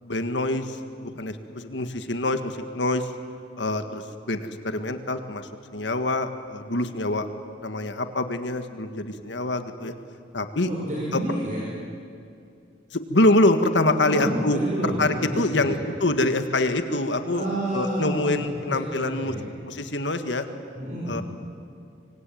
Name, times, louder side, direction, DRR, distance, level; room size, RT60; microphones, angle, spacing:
voice 1, 0.0-3.1 3.6-7.3 7.6-9.9 10.3-10.7 11.1-11.2 12.9-17.5 17.7-19.3 19.7-20.5 21.1-21.2, left 2 dB, 75° left, 8 dB, 1.8 m, -25 dB
voice 2, 10.6-11.6 13.9-15.7 17.3-19.4 20.8-21.2, right 1 dB, 45° right, -5 dB, 5.9 m, -29 dB
25.5 x 24.5 x 9.4 m, 2.4 s
head